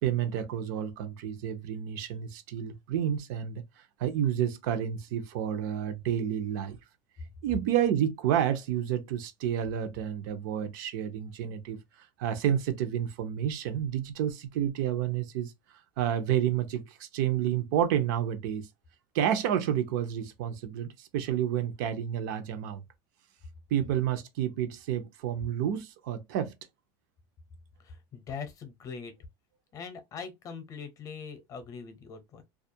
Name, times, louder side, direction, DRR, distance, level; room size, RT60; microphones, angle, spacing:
voice 1, 0.0-3.6 4.0-6.8 7.4-11.8 12.2-15.5 16.0-18.7 19.1-22.8 23.7-26.5, right 10 dB, 75° right, 0.6 m, -30 dB
voice 2, 27.8-29.1 29.7-32.4, left 6 dB, 30° left, 0.7 m, -42 dB
2.3 x 2.1 x 2.7 m
supercardioid pair, 145°, 11 cm